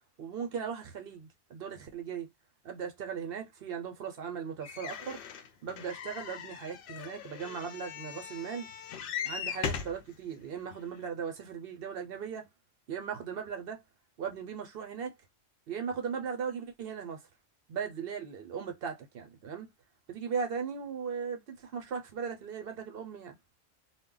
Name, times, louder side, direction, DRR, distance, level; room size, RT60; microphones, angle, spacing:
voice 1, 0.2-2.3 2.6-5.2 5.6-8.7 9.2-12.5 12.9-13.8 14.2-15.1 15.7-17.2 17.7-19.7 20.1-23.4, right 6 dB, 65° right, 0.8 m, -38 dB
sound 1, 4.6-10.0 10.7-10.8 11.1-11.2, left 7 dB, 60° left, 0.7 m, -39 dB
2.2 x 2.1 x 3.7 m
omnidirectional pair, 1.1 m